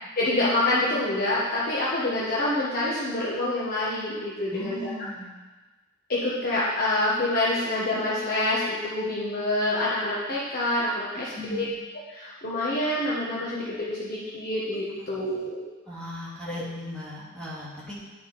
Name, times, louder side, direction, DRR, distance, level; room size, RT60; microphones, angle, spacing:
voice 1, 0.2-4.9 6.1-11.7 12.1-15.6 16.5-16.7, left 1 dB, 50° left, -7 dB, 1.3 m, -27 dB
voice 2, 4.5-5.3 11.3-11.7 15.0-15.1 15.9-18.0, left 1 dB, 5° left, -9 dB, 2.2 m, -37 dB
8.4 x 4.9 x 4.2 m, 1.2 s
head